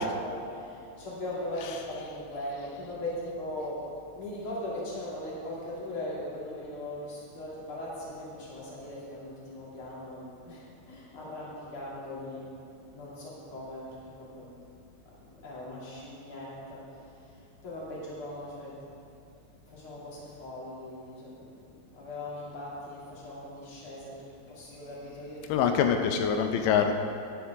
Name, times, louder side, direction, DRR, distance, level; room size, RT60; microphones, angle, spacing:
voice 1, 0.0-3.8 4.1-12.5 12.9-14.6 15.0-16.9 17.2-17.3 17.6-18.8 19.7-25.4, left 1 dB, 35° left, -7 dB, 2.9 m, -39 dB
voice 2, 25.5-26.9, left 7 dB, 85° left, 5 dB, 3.0 m, -25 dB
15.0 x 10.5 x 3.6 m, 2.5 s
omnidirectional pair, 5.1 m